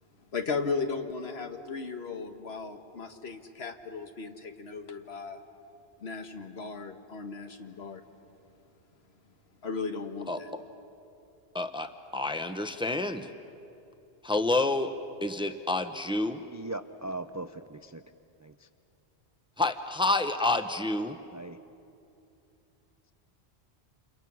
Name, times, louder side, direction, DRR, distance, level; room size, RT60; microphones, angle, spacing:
voice 1, 0.3-5.4 6.0-8.0 9.6-10.5, left 4 dB, 70° left, 6 dB, 1.6 m, -36 dB
voice 2, 10.3-10.6 11.5-13.3 14.2-16.4 19.6-21.2, left 2 dB, 5° right, 8 dB, 0.8 m, -29 dB
voice 3, 16.5-18.0 18.4-18.5 21.3-21.6, right 2 dB, 30° right, 10 dB, 0.3 m, -39 dB
29.0 x 27.5 x 6.2 m, 2.7 s
omnidirectional pair, 1.1 m